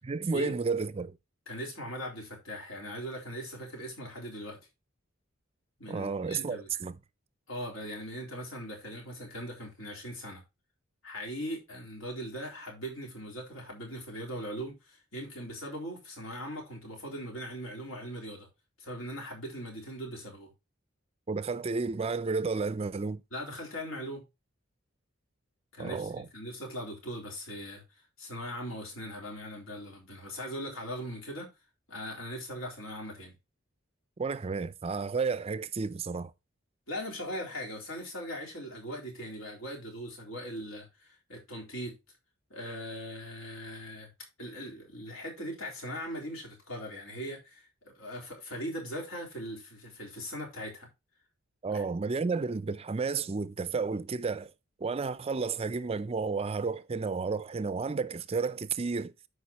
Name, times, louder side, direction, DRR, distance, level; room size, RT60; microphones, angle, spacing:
voice 1, 0.1-1.2 5.9-7.0 21.3-23.2 25.8-26.3 34.2-36.3 51.6-54.5 54.8-59.1, right 4 dB, 30° right, 0.4 m, -32 dB
voice 2, 1.5-4.6 5.8-6.7 7.5-10.4 11.0-18.5 18.8-20.5 23.3-24.2 25.7-31.5 31.9-33.3 36.9-42.0 42.5-44.1 44.4-50.9 51.7-51.8, equal, 80° left, 3.8 m, -40 dB
13.0 x 5.0 x 2.9 m
head